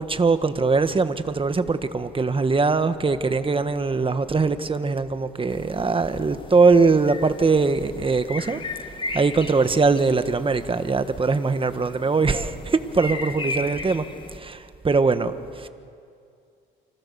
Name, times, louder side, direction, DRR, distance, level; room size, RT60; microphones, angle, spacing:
voice 1, 0.0-8.6 9.1-14.0 14.3-15.7, right 4 dB, 25° right, 10 dB, 1.5 m, -21 dB
sound 1, 5.5-14.4, left 3 dB, 25° left, 2.1 m, -36 dB
28.5 x 26.0 x 7.0 m, 2.3 s
cardioid pair, 90°, 20 cm